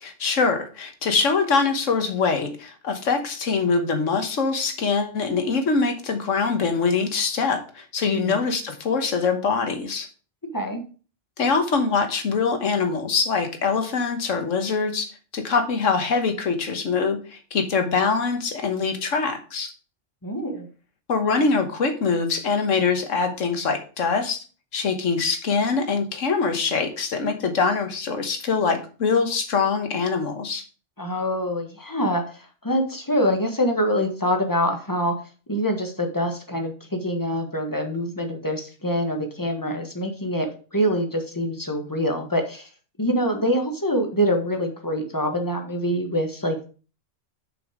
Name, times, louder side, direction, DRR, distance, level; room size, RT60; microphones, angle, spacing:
voice 1, 0.0-10.1 11.4-19.7 21.1-24.4 24.7-30.6, left 4 dB, 80° left, 6 dB, 1.6 m, -23 dB
voice 2, 8.1-8.5 10.5-10.8 20.2-20.7 31.0-35.1 35.5-42.7 43.0-46.7, equal, 15° left, 4 dB, 1.4 m, -25 dB
6.7 x 5.6 x 5.0 m, 0.37 s
omnidirectional pair, 1.3 m